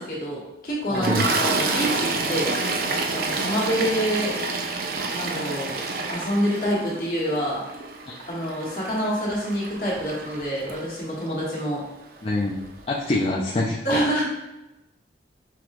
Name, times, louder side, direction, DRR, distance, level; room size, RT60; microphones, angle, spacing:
voice 1, 0.0-2.5 3.1-4.4 5.1-5.8 6.1-7.6 8.2-11.8 13.8-14.2, equal, 55° left, -5 dB, 1.5 m, -27 dB
voice 2, 0.9-1.3 12.2-12.6 12.9-14.0, left 2 dB, 30° left, -4 dB, 0.4 m, -25 dB
Toilet flush, 0.9-11.2 12.2-12.4 12.6-12.8, right 3 dB, 55° right, 0.5 m, -28 dB
5.7 x 2.9 x 3.0 m, 0.96 s
head